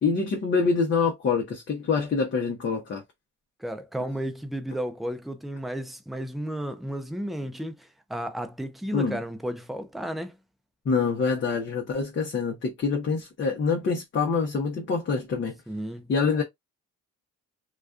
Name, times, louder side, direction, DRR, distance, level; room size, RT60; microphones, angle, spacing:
voice 1, 0.0-3.0 8.9-9.2 10.9-15.6 16.1-16.4, left 5 dB, 40° left, 0.7 m, -25 dB
voice 2, 3.6-10.4 15.7-16.1, right 1 dB, ahead, 0.4 m, -33 dB
2.3 x 2.2 x 2.4 m
cardioid pair, 90°, 30 cm